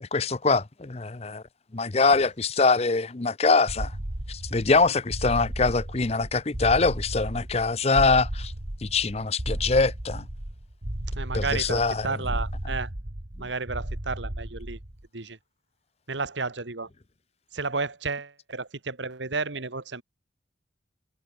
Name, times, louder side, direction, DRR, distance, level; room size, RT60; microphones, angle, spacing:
voice 1, 0.0-1.4 1.7-3.9 4.3-8.5 8.8-10.3 11.3-12.4, left 4 dB, 35° left, 0.7 m, -23 dB
sound 1, 3.7-15.0, right 1 dB, 50° right, 2.1 m, -34 dB
voice 2, 11.2-12.9 13.4-14.8 15.1-15.4 16.1-16.9 17.5-20.0, right 4 dB, 80° right, 1.8 m, -32 dB
head